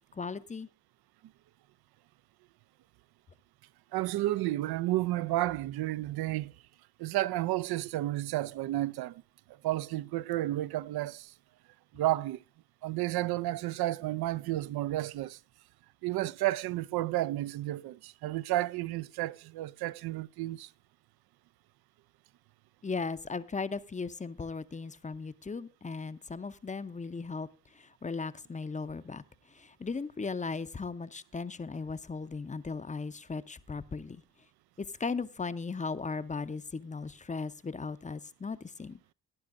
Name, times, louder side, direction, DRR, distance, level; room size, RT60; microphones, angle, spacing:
voice 1, 0.1-0.7 22.8-34.2 34.8-39.0, left 4 dB, 15° left, 0.7 m, -37 dB
voice 2, 3.9-6.5 7.0-9.2 9.6-11.3 11.9-12.4 12.8-15.4 16.0-20.7, right 16 dB, 50° right, 0.5 m, -31 dB
15.5 x 10.5 x 2.5 m
hypercardioid pair, 45°, 49 cm